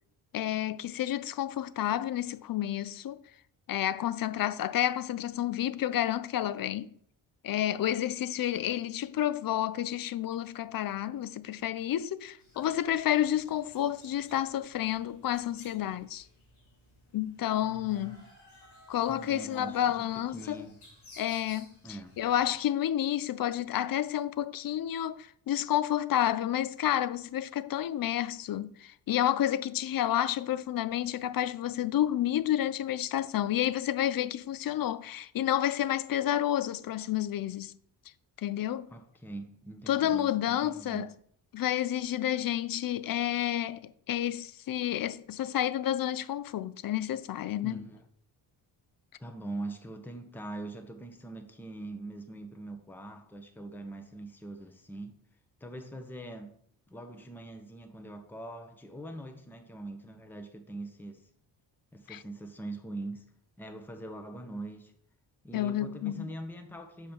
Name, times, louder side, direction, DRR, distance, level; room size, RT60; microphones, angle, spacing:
voice 1, 0.3-3.2 3.7-6.9 7.4-16.3 17.1-18.2 18.9-20.6 21.2-37.8 38.4-38.9 39.9-41.1 41.5-47.8 62.1-62.2 65.5-66.3, left 11 dB, 45° left, 0.5 m, -30 dB
sound 1, 12.4-22.5, left 1 dB, 90° left, 3.4 m, -57 dB
voice 2, 17.7-18.2 19.1-20.8 21.8-22.2 38.9-41.1 47.6-48.0 49.2-55.2 55.6-56.5 56.9-61.3 61.9-63.2 63.6-64.9 65.4-67.1, right 2 dB, 5° left, 1.0 m, -43 dB
6.7 x 5.0 x 4.5 m
supercardioid pair, 50°, 49 cm